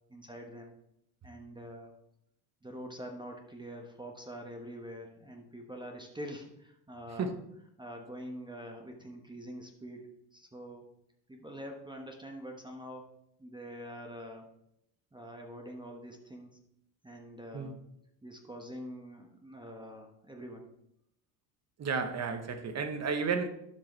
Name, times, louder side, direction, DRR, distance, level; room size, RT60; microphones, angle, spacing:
voice 1, 0.1-0.7 1.2-1.9 2.6-7.3 7.8-10.8 11.3-13.0 13.4-14.5 15.1-16.6 17.0-17.7 18.2-20.7, equal, 10° right, 2 dB, 1.0 m, -45 dB
voice 2, 21.8-23.5, right 5 dB, 30° right, 8 dB, 1.0 m, -32 dB
12.0 x 4.7 x 3.2 m, 0.78 s
supercardioid pair, 95°, 50 cm